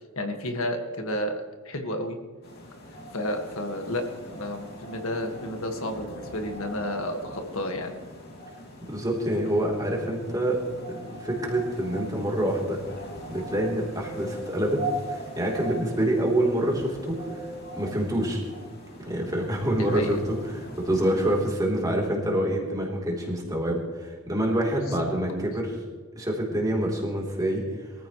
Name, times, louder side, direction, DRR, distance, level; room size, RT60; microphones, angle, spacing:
voice 1, 0.2-2.2 3.1-7.9 19.8-20.2, left 1 dB, 70° left, 4 dB, 1.8 m, -31 dB
sound 1, 2.4-21.4, equal, 45° left, 2.9 m, -40 dB
voice 2, 8.8-10.6 10.9-12.8 13.3-14.8 15.1-17.5 17.7-18.4 19.0-25.7 26.1-27.6, right 1 dB, 15° right, -2 dB, 3.4 m, -26 dB
23.5 x 14.5 x 3.2 m, 1.5 s
head